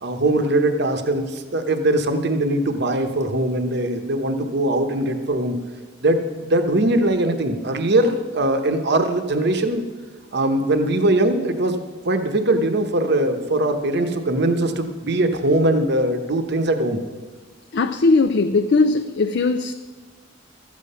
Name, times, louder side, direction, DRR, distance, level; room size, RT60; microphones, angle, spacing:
voice 1, 0.0-5.6 6.0-9.9 10.3-11.8 12.0-17.0, right 1 dB, 60° right, 1.0 m, -21 dB
voice 2, 17.7-19.7, left 3 dB, 60° left, 0.5 m, -19 dB
13.5 x 8.5 x 5.5 m
head